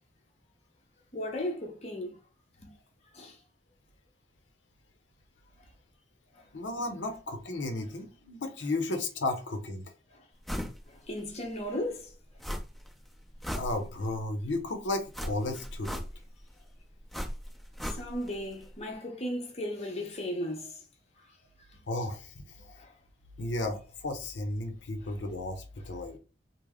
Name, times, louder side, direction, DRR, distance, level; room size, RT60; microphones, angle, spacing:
voice 1, 1.1-2.1 2.6-2.7 3.1-3.3 10.9-12.1 17.8-20.7 22.8-22.9, left 1 dB, 35° left, 0.8 m, -35 dB
voice 2, 6.5-9.8 13.5-16.0 21.9-22.3 23.4-26.2, left 2 dB, 85° left, 0.6 m, -34 dB
sound 1, 10.5-10.8 11.2-11.3 12.4-12.9 13.2-14.2 15.1-16.4 17.1-18.4 18.6-18.7, equal, ahead, 0.7 m, -37 dB
3.3 x 2.0 x 3.5 m
head